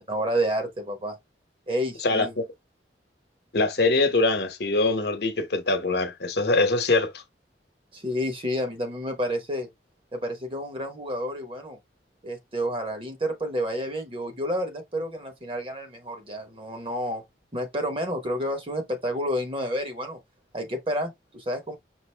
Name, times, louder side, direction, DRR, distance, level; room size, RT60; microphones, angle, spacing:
voice 1, 0.1-1.2 1.7-2.3 7.9-9.7 10.1-11.8 12.2-17.2 17.5-20.2 20.5-21.7, equal, 30° right, 1.1 m, -30 dB
voice 2, 2.0-2.4 3.5-7.2, left 3 dB, 65° left, 1.0 m, -23 dB
5.9 x 2.6 x 3.3 m
head